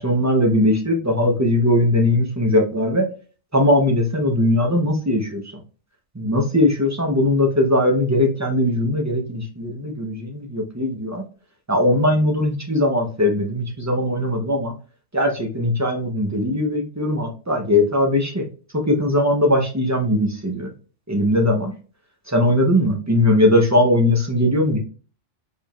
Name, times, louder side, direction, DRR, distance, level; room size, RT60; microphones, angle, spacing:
voice 1, 0.0-3.1 3.5-5.4 6.1-11.2 11.7-14.7 15.1-18.4 18.7-20.7 21.1-21.7 22.3-24.8, left 1 dB, 15° right, 1 dB, 0.7 m, -19 dB
4.5 x 3.5 x 2.3 m, 0.36 s
omnidirectional pair, 1.2 m